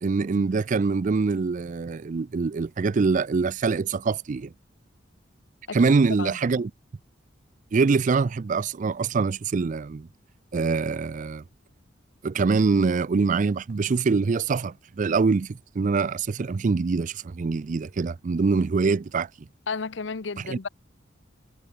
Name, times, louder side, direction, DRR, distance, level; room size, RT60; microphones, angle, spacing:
voice 1, 0.0-4.5 5.7-6.7 7.7-10.1 10.5-11.4 12.2-19.3 20.5-20.6, right 4 dB, 40° right, 0.4 m, -24 dB
voice 2, 6.2-6.6 19.7-20.7, left 4 dB, 70° left, 0.8 m, -33 dB
head